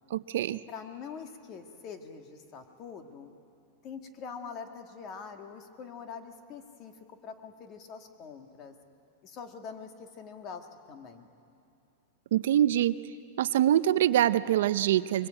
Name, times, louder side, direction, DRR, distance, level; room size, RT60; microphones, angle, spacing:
voice 1, 0.1-0.6 12.3-13.0 13.4-15.3, right 12 dB, 70° right, 14 dB, 0.6 m, -24 dB
voice 2, 0.7-3.3 3.8-8.8 9.2-11.3, left 6 dB, 30° left, 6 dB, 1.8 m, -44 dB
23.5 x 22.0 x 8.8 m, 2.6 s
supercardioid pair, 160°, 0 cm